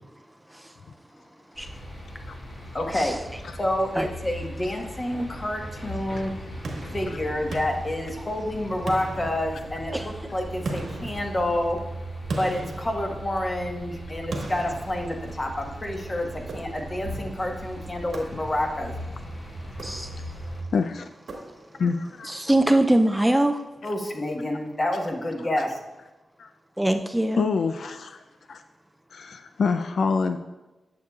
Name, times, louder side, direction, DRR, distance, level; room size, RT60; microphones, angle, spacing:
sound 1, 1.5-20.6, right 1 dB, 55° left, 1.8 m, -38 dB
voice 1, 2.7-3.2 3.5-6.3 6.9-11.8 12.4-18.9 23.8-25.8, left 1 dB, 30° left, 2 dB, 1.2 m, -28 dB
sound 2, 6.6-8.5 8.9-10.0 10.7-13.7 14.3-15.7 16.5-17.1 18.1-18.8 19.7-20.5 21.3-21.9, right 2 dB, 80° right, 1.3 m, -38 dB
voice 2, 19.8-20.2 22.3-23.6 26.8-27.5, right 1 dB, 10° right, 7 dB, 0.4 m, -22 dB
voice 3, 20.7-21.0 21.8-22.3 26.4-26.5 27.4-28.2 28.5-28.6 29.1-30.4, left 5 dB, 75° left, 8 dB, 0.4 m, -26 dB
9.2 x 7.0 x 2.4 m, 1.1 s
cardioid pair, 75°, 0 cm